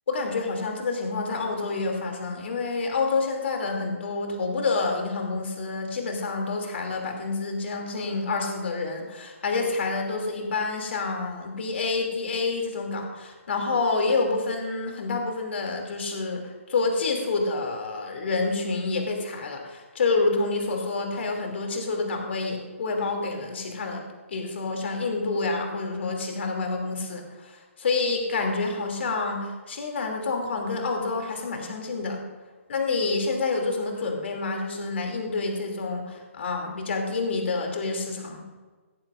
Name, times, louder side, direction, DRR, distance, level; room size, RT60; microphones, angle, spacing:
voice 1, 0.1-32.2 32.7-38.5, left 3 dB, 55° left, 2 dB, 2.7 m, -28 dB
16.5 x 14.0 x 2.5 m, 1.3 s
hypercardioid pair, 165°, 7 cm